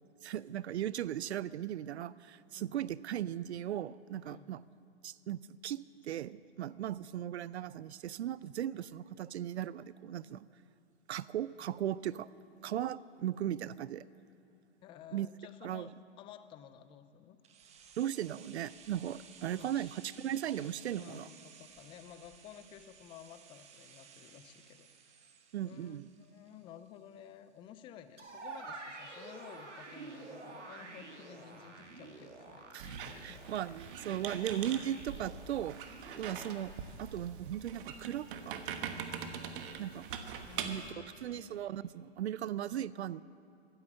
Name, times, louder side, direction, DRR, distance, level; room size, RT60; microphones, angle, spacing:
voice 1, 0.2-4.6 5.0-10.5 11.1-12.3 12.6-14.0 15.1-15.3 15.6-15.9 18.0-21.3 25.5-26.1 32.7-32.9 33.2-35.8 36.2-36.7 37.0-39.0 39.8-40.1 40.6-40.8 41.2-43.2, right 11 dB, 70° right, 19 dB, 0.5 m, -37 dB
voice 2, 4.2-4.5 14.8-17.4 19.5-20.2 20.5-25.3 25.6-33.4 33.7-33.8 34.3-34.4 36.3-36.6 40.4-41.6, left 9 dB, 15° left, 12 dB, 0.4 m, -54 dB
sound 1, 17.4-27.3 27.6-27.7, right 7 dB, 20° right, 1.0 m, -57 dB
sound 2, 28.2-36.5, right 3 dB, 85° right, 2.1 m, -49 dB
Squeak, 32.8-40.9, right 7 dB, 50° right, 1.3 m, -43 dB
13.5 x 9.5 x 7.5 m, 2.7 s
hypercardioid pair, 125°, 35 cm